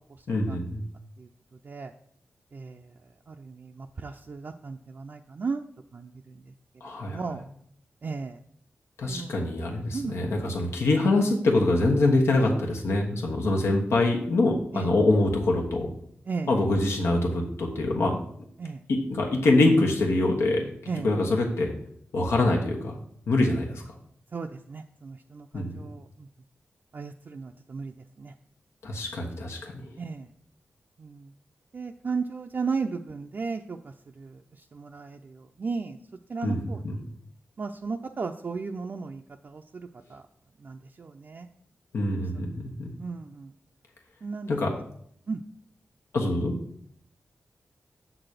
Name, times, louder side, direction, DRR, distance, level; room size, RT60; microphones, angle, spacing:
voice 1, 0.3-0.8 6.8-7.2 9.0-15.9 16.5-18.2 18.9-20.6 21.0-21.7 22.1-22.9 23.3-23.8 25.5-25.8 28.8-29.9 36.4-36.6 36.8-37.0 41.9-42.9 44.5-44.7 46.1-46.5, left 2 dB, 90° left, 0 dB, 1.3 m, -24 dB
voice 2, 2.5-2.9 3.3-5.6 5.9-6.5 7.0-7.5 8.0-8.4 9.0-9.3 9.9-10.2 14.7-14.9 16.3-16.6 18.6-18.8 20.9-21.1 24.3-26.3 26.9-28.3 30.0-30.3 31.0-31.3 31.7-36.0 36.3-37.0 37.6-40.2 40.6-41.5 43.0-43.5 44.2-44.5 45.3-45.4, right 4 dB, 50° right, 3 dB, 0.4 m, -35 dB
7.3 x 4.0 x 6.6 m, 0.66 s
wide cardioid pair, 85°, 4 cm